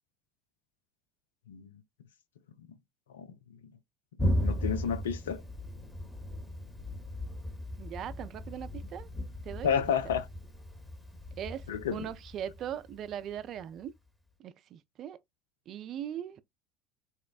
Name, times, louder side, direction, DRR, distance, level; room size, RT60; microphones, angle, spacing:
voice 1, 4.2-5.4 9.6-10.3 11.7-12.1, left 7 dB, 80° left, 0.4 m, -31 dB
Thunder, 4.2-13.6, equal, 10° left, 0.9 m, -36 dB
voice 2, 7.8-9.1 9.4-9.8 11.3-13.9 14.4-15.2 15.7-16.4, right 10 dB, 50° right, 0.3 m, -40 dB
4.1 x 2.0 x 2.3 m
hypercardioid pair, 70°, 0 cm